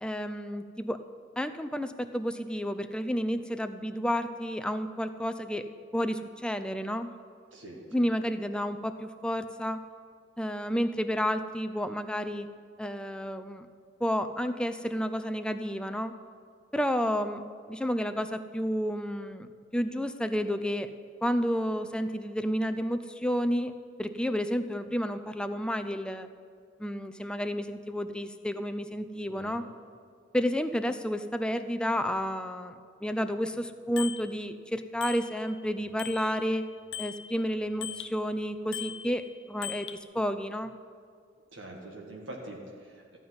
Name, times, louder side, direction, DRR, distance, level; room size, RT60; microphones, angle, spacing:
voice 1, 0.0-1.0 1.4-5.7 5.9-7.1 7.9-9.8 10.4-12.5 12.8-13.7 14.0-16.1 16.7-20.9 21.2-23.7 24.0-26.3 26.8-29.6 30.3-32.7 33.0-36.6 37.0-39.9 40.1-40.7, equal, 5° left, 9 dB, 0.4 m, -31 dB
voice 2, 7.5-8.1 29.3-29.6 41.5-43.2, right 1 dB, 85° right, -1 dB, 1.9 m, -44 dB
Bicycle bell, 34.0-34.3 35.0-35.6 36.0-38.2 38.7-40.0, left 10 dB, 85° left, 0.6 m, -40 dB
14.0 x 5.5 x 9.5 m, 2.2 s
head